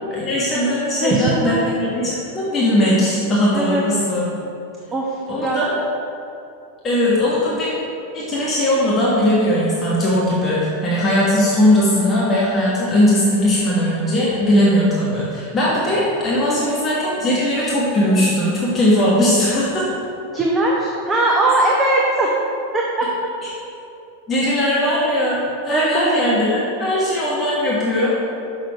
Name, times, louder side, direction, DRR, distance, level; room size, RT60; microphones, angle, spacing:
voice 1, 0.1-4.2 5.3-5.7 6.8-7.7 8.1-19.9 23.4-23.5 24.3-25.4 25.6-28.1, left 1 dB, 20° left, -7 dB, 1.6 m, -19 dB
voice 2, 1.0-1.6 3.5-3.8 4.9-5.6 16.5-16.8 20.3-22.3 22.7-23.3 25.7-26.1, right 2 dB, 20° right, -2 dB, 0.8 m, -20 dB
6.5 x 6.3 x 4.9 m, 2.7 s
figure-of-eight pair, 90°, 0 cm